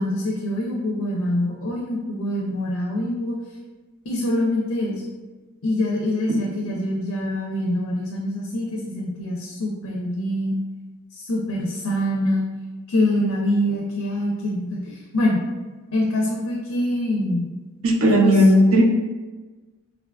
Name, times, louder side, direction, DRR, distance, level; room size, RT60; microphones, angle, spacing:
voice 1, 0.0-3.4 4.1-5.0 5.6-10.6 11.1-12.5 12.9-15.4 15.9-17.5 18.1-18.4, left 1 dB, 80° left, -2 dB, 0.5 m, -25 dB
voice 2, 17.8-18.8, equal, 65° right, 0 dB, 0.4 m, -16 dB
3.6 x 2.4 x 2.2 m, 1.2 s
head